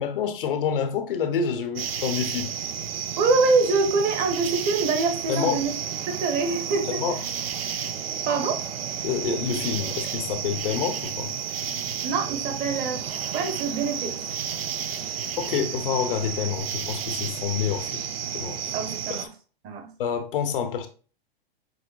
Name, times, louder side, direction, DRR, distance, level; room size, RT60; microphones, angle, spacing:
voice 1, 0.0-2.5 5.3-5.6 7.0-7.1 9.0-11.3 15.0-15.1 15.4-18.0 18.3-18.8 19.1-19.3 20.0-20.9, left 7 dB, 60° left, 0.9 m, -27 dB
sound 1, 1.8-19.3, right 8 dB, 80° right, 0.6 m, -32 dB
voice 2, 3.2-5.7 6.1-7.0 8.3-8.6 12.0-13.0 13.3-14.1 18.7-19.3 19.6-19.9, right 4 dB, 30° right, 1.0 m, -24 dB
6.5 x 3.2 x 2.4 m
hypercardioid pair, 115°, 30 cm